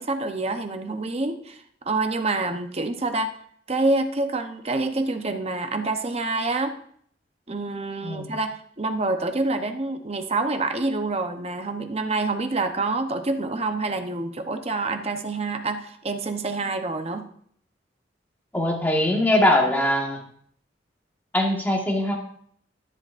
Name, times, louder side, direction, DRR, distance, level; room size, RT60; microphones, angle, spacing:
voice 1, 0.0-1.6 1.8-3.3 3.7-6.8 7.5-17.3, right 2 dB, 35° right, 6 dB, 0.8 m, -27 dB
voice 2, 18.5-20.2 21.3-22.1, left 1 dB, 10° left, -1 dB, 1.6 m, -21 dB
13.5 x 7.2 x 2.6 m, 0.63 s
head